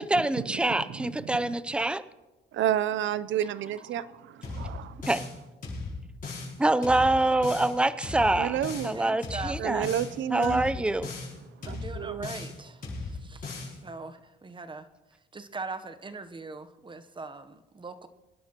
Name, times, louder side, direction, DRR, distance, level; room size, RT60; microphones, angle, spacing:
voice 1, 0.0-2.0 5.1-5.2 6.6-9.9 10.3-11.1, right 2 dB, 5° right, 15 dB, 0.5 m, -25 dB
voice 2, 0.9-1.5 2.5-5.1 8.4-8.9 9.6-10.6 11.6-12.3, right 11 dB, 70° right, 16 dB, 0.6 m, -31 dB
sound 1, 4.4-5.4 5.6-6.5 6.8-7.7 8.0-8.9 9.2-10.1 10.4-11.3 11.6-12.6 12.8-13.7, left 3 dB, 45° left, 6.0 m, -37 dB
voice 3, 8.8-9.6 11.6-13.5 13.8-14.9 15.3-18.1, right 3 dB, 25° right, 10 dB, 0.9 m, -41 dB
24.5 x 11.0 x 3.0 m, 1.1 s
cardioid pair, 90°, 20 cm